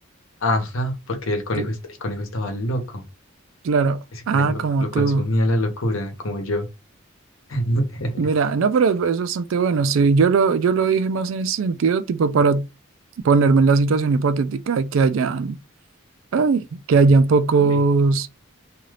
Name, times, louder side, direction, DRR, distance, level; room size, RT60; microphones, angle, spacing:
voice 1, 0.4-3.0 4.3-4.6 4.9-6.7 7.5-8.1 17.6-17.7, left 1 dB, 80° left, 0.9 m, -25 dB
voice 2, 3.6-5.3 8.2-12.7 13.2-15.6 16.3-18.3, right 4 dB, 65° right, 0.4 m, -19 dB
2.7 x 2.4 x 3.2 m
head